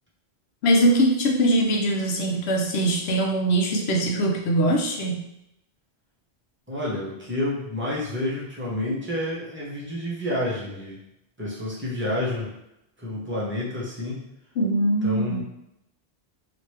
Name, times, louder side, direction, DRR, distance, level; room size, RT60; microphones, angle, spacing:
voice 1, 0.6-5.2 14.6-15.4, right 1 dB, 75° left, 1 dB, 0.8 m, -22 dB
voice 2, 6.7-11.0 11.4-12.5 13.0-14.2 15.0-15.4, left 1 dB, 10° right, -7 dB, 0.8 m, -29 dB
2.9 x 2.5 x 3.2 m, 0.83 s
omnidirectional pair, 1.1 m